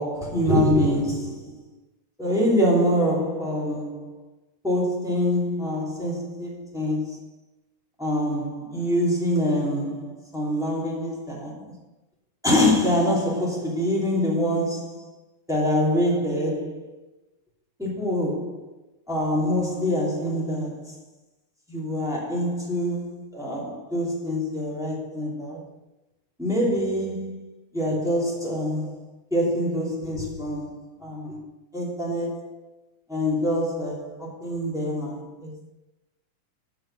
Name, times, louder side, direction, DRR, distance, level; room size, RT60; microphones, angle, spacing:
voice 1, 0.0-1.6 2.2-4.2 4.6-7.2 8.0-11.6 12.4-15.1 15.5-16.9 17.8-18.7 19.1-20.9 21.7-25.6 26.4-27.5 27.7-29.0 29.3-31.4 31.7-32.6 33.1-35.7, equal, ahead, 2.3 m, -25 dB
9.8 x 5.7 x 5.8 m
omnidirectional pair, 3.4 m